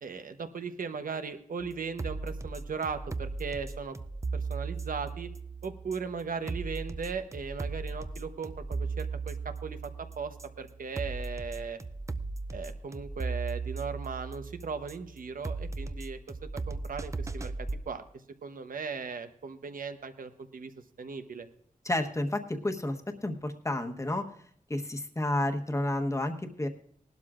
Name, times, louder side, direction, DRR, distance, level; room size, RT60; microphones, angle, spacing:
voice 1, 0.0-4.0 4.3-5.3 5.6-11.8 12.5-17.5 17.9-18.0 18.4-20.7 21.0-21.5, right 5 dB, 80° right, 8 dB, 1.0 m, -38 dB
sound 1, 1.6-17.8, right 3 dB, 20° right, 0.4 m, -37 dB
voice 2, 21.8-24.3 24.7-26.7, left 1 dB, 20° left, 5 dB, 1.1 m, -31 dB
19.5 x 12.0 x 2.5 m, 0.63 s
wide cardioid pair, 115°, 14 cm